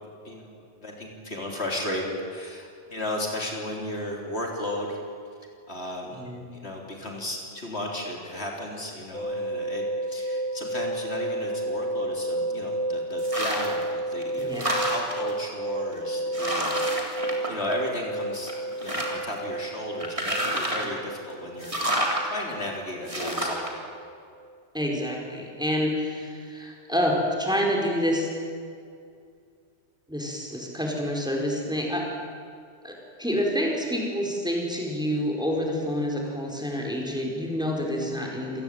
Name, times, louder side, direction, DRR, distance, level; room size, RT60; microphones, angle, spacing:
voice 1, 0.2-5.0 5.7-6.2 6.5-14.5 14.8-18.5 18.8-21.8 22.2-23.9, left 1 dB, 60° left, 0 dB, 4.0 m, -34 dB
sound 1, 9.1-24.1 24.3-24.5, right 1 dB, 45° left, 6.3 m, -32 dB
sound 2, 13.2-13.8 14.2-15.3 15.9-16.0 16.3-18.1 18.4-19.3 20.0-21.0 21.6-22.2 23.1-23.7, equal, 25° right, 3.5 m, -29 dB
voice 2, 14.4-14.7 24.7-28.3 30.1-32.0 32.8-32.9 33.2-38.6, equal, 5° right, 0 dB, 4.7 m, -28 dB
27.5 x 19.0 x 9.1 m, 2.3 s
omnidirectional pair, 1.2 m